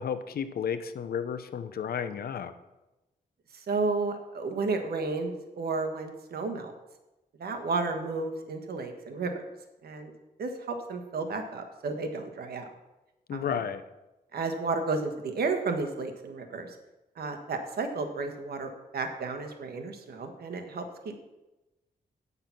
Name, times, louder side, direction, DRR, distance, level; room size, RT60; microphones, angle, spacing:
voice 1, 0.0-2.5 13.3-13.8, left 7 dB, 75° left, 11 dB, 0.7 m, -32 dB
voice 2, 3.5-6.7 7.4-9.4 9.8-10.1 10.4-12.7 13.3-13.5 14.3-16.7 17.2-21.1, right 3 dB, 80° right, 6 dB, 1.4 m, -32 dB
9.4 x 6.8 x 5.8 m, 1.0 s
wide cardioid pair, 115°, 16 cm